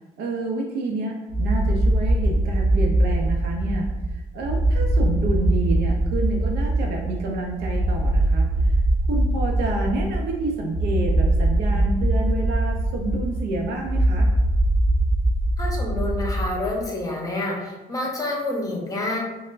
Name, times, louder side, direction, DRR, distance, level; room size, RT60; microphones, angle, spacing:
voice 1, 0.2-8.7 9.1-14.3, right 2 dB, 75° right, 0 dB, 0.5 m, -29 dB
sound 1, 1.3-16.8, right 1 dB, 40° right, 1.2 m, -22 dB
voice 2, 15.6-19.2, left 2 dB, 20° left, -1 dB, 0.8 m, -28 dB
4.2 x 2.1 x 2.5 m, 1.1 s
cardioid pair, 110°, 17 cm